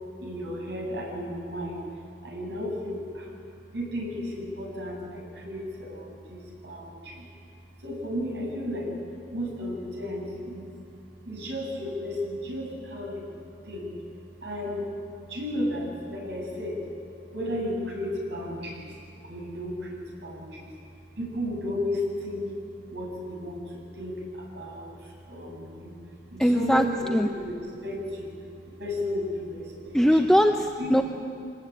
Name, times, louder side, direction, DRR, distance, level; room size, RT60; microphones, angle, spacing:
voice 1, 0.2-1.8 2.2-3.3 3.7-7.3 7.8-8.9 9.3-10.7 11.2-13.3 13.7-13.9 14.4-14.8 15.3-16.8 17.3-18.9 19.2-20.7 21.2-22.5 22.9-24.9 25.3-25.9 26.3-28.3 28.8-30.0 30.8-31.0, left 1 dB, 70° right, -1 dB, 7.6 m, -33 dB
voice 2, 26.4-27.3 29.9-31.0, equal, 5° left, 4 dB, 0.7 m, -21 dB
25.0 x 20.0 x 8.7 m, 2.5 s
head